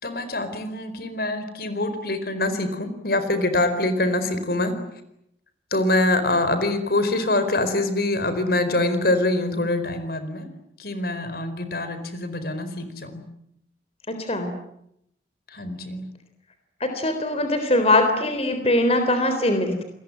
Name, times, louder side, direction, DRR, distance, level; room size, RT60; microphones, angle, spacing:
voice 1, 0.0-4.7 5.7-10.5 10.8-13.2 15.5-16.0, left 2 dB, 60° left, 10 dB, 4.6 m, -24 dB
voice 2, 14.1-14.5 16.8-19.8, left 1 dB, 35° left, 7 dB, 3.7 m, -22 dB
29.0 x 21.5 x 9.7 m, 0.78 s
head